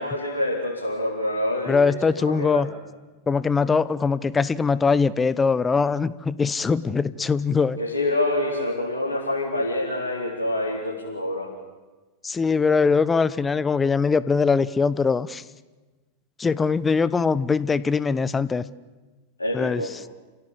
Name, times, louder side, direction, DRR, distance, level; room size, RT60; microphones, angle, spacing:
voice 1, 0.0-2.6 7.8-11.5 19.4-19.9, left 1 dB, 80° left, -4 dB, 4.0 m, -26 dB
voice 2, 1.7-2.7 3.3-7.8 12.2-15.4 16.4-18.6 19.5-19.8, left 5 dB, 15° left, 18 dB, 0.9 m, -22 dB
30.0 x 17.0 x 8.7 m, 1.2 s
figure-of-eight pair, 90°, 0 cm